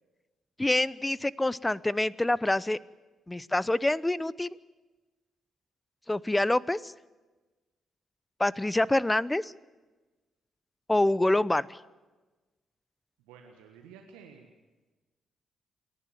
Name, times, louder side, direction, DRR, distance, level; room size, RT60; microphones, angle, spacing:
voice 1, 0.6-2.8 3.3-4.5 6.1-6.9 8.4-9.5 10.9-11.8, left 1 dB, 15° left, 21 dB, 0.7 m, -26 dB
voice 2, 13.2-14.5, right 6 dB, 75° right, 3 dB, 1.5 m, -52 dB
28.5 x 11.0 x 9.1 m, 1.2 s
hypercardioid pair, 40°, 0 cm